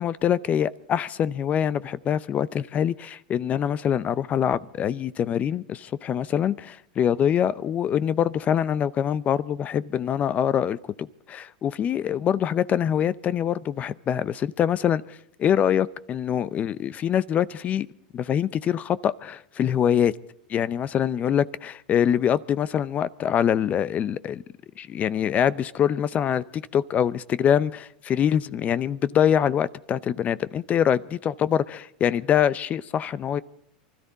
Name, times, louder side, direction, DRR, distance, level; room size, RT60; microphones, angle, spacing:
voice 1, 0.0-17.9 18.1-20.1 20.5-24.4 24.8-33.4, left 9 dB, 30° left, 0.6 m, -24 dB
24.5 x 13.0 x 4.1 m
hypercardioid pair, 110°, 5 cm